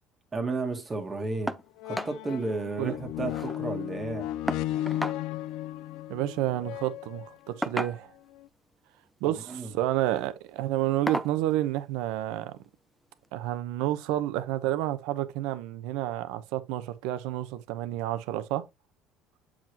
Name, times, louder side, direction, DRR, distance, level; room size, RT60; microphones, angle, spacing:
voice 1, 0.3-1.6 1.8-4.3 9.2-9.7, right 3 dB, 20° right, 1.4 m, -33 dB
sound 1, 1.4-1.5 1.8-7.7 8.4-8.5, left 13 dB, 70° left, 0.3 m, -35 dB
sound 2, 1.5-1.7 1.9-2.2 2.5-2.6 2.9-3.6 4.5-5.2 6.5-6.7 7.6-8.3 9.3-9.6 10.1-10.3 11.1-11.4 12.6-12.7 13.2-13.3, equal, ahead, 0.4 m, -34 dB
voice 2, 6.1-8.1 9.2-12.6 13.3-18.6, right 14 dB, 80° right, 0.8 m, -30 dB
7.4 x 4.9 x 2.9 m
cardioid pair, 130°, 0 cm